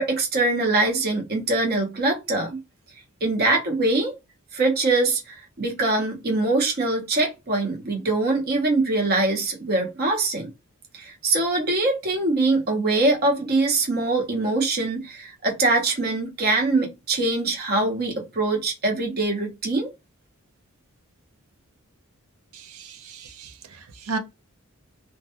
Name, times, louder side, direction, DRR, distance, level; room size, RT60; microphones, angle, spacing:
voice 1, 0.0-2.6 3.2-4.1 4.5-10.5 10.9-19.9, right 2 dB, 45° right, 0.7 m, -23 dB
voice 2, 22.5-24.2, right 4 dB, 80° right, 0.5 m, -35 dB
2.2 x 2.2 x 2.7 m
head